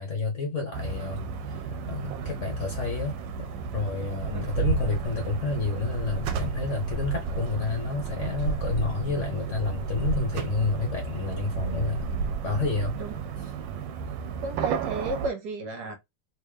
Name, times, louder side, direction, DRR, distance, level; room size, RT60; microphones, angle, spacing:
voice 1, 0.0-12.1 12.4-13.0 13.4-13.5, left 4 dB, 55° left, 0.9 m, -30 dB
sound 1, 0.7-15.3, right 5 dB, 85° right, 1.3 m, -32 dB
voice 2, 14.4-16.0, right 3 dB, 65° right, 1.4 m, -33 dB
3.6 x 2.8 x 3.1 m
omnidirectional pair, 2.0 m